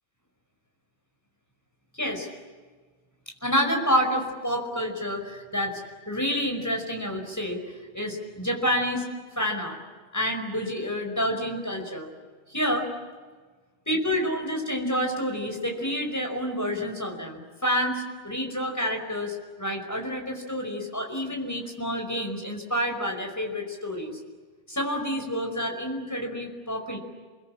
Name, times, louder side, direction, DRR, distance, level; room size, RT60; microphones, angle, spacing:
voice 1, 1.9-2.3 3.4-5.8 6.1-7.6 7.9-9.1 9.3-9.8 10.1-12.1 12.5-12.9 13.9-24.2 24.7-27.0, equal, 15° left, 2 dB, 5.2 m, -28 dB
29.5 x 21.0 x 8.8 m, 1.4 s
omnidirectional pair, 1.2 m